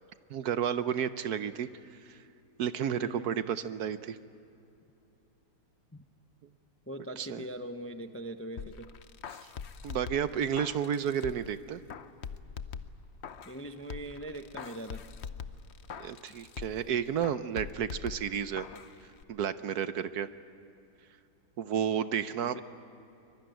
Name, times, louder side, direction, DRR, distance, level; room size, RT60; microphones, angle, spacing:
voice 1, 0.3-1.7 2.0-2.2 2.6-4.2 7.2-7.4 9.3-9.4 9.8-11.8 16.0-18.7 19.3-20.3 21.6-22.6, right 8 dB, 65° right, 12 dB, 1.2 m, -31 dB
voice 2, 3.0-3.4 5.9-6.0 6.9-8.9 13.4-15.0 22.4-22.6, right 1 dB, 15° left, 7 dB, 0.5 m, -41 dB
sound 1, 8.6-11.6 11.9-13.6 13.9-16.9 17.2-18.9 19.2-19.3, left 7 dB, 50° left, 0.8 m, -43 dB
24.5 x 22.0 x 9.1 m, 2.8 s
omnidirectional pair, 1.9 m